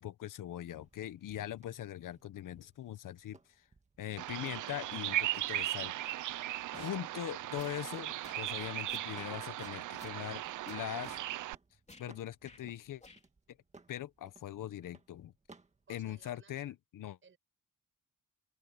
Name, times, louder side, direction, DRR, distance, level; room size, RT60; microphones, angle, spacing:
voice 1, 0.0-3.4 4.0-6.0 6.7-11.2 12.0-13.0 13.9-15.3 15.9-17.2, left 12 dB, 80° left, 1.1 m, -41 dB
sound 1, 0.8-16.4, right 3 dB, 20° right, 1.9 m, -64 dB
Bird vocalization bird call bird song, 4.2-11.5, right 15 dB, 70° right, 0.5 m, -38 dB
sound 2, 6.7-7.0 7.5-7.8 8.2-9.3 9.6-10.2 10.7-11.3 11.9-12.1 12.4-12.6 13.0-13.2, left 3 dB, 20° left, 2.8 m, -55 dB
voice 2, 15.9-16.7 17.2-17.4, right 5 dB, 40° right, 5.4 m, -61 dB
open air
wide cardioid pair, 150°, 31 cm